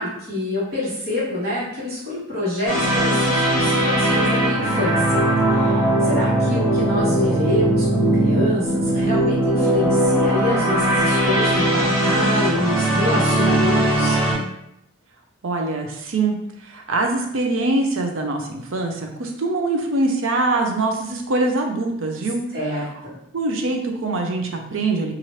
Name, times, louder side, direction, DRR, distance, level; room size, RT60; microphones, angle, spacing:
voice 1, 0.0-5.0 5.5-14.2 22.5-23.2, left 1 dB, 45° right, -7 dB, 1.4 m, -26 dB
sound 1, 2.7-14.3, right 1 dB, 5° right, 1.3 m, -19 dB
voice 2, 15.4-16.4 16.7-18.9 19.2-22.4 23.3-25.1, right 2 dB, 65° right, 3 dB, 0.5 m, -23 dB
2.8 x 2.5 x 3.0 m, 0.77 s
head